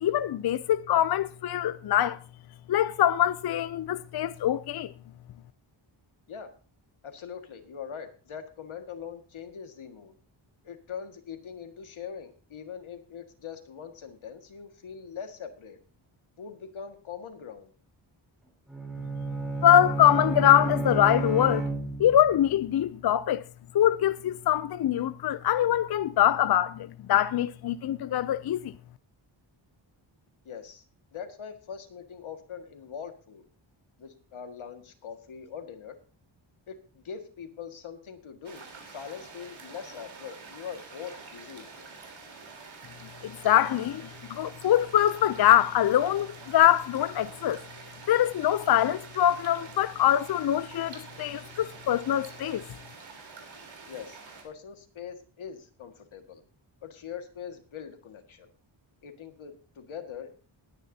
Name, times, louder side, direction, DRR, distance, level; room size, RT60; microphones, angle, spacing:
voice 1, 0.0-2.2 2.7-4.9 19.6-21.6 22.0-23.4 23.7-28.7 43.2-47.6 48.1-52.6, left 11 dB, 55° left, 0.5 m, -23 dB
voice 2, 7.0-10.1 10.6-15.8 16.4-17.7 30.5-30.8 31.1-33.4 34.0-36.0 36.7-41.9 53.9-56.4 56.8-58.5 59.0-60.3, left 7 dB, 90° left, 1.9 m, -42 dB
Bowed string instrument, 18.7-22.3, right 2 dB, ahead, 4.6 m, -31 dB
sound 1, 38.4-54.4, right 4 dB, 75° right, 3.7 m, -47 dB
19.5 x 10.0 x 2.7 m
wide cardioid pair, 135°, 47 cm